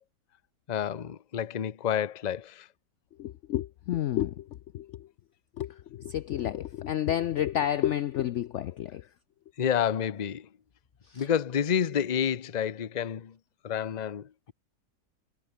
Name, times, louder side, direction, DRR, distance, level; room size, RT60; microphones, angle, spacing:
voice 1, 0.7-2.6 9.6-10.5 11.2-13.3 13.6-14.5, left 8 dB, 40° left, 0.6 m, -29 dB
voice 2, 3.2-4.4 4.7-4.9 5.6-9.0 11.1-11.3, left 11 dB, 85° left, 0.6 m, -30 dB
omnidirectional pair, 1.8 m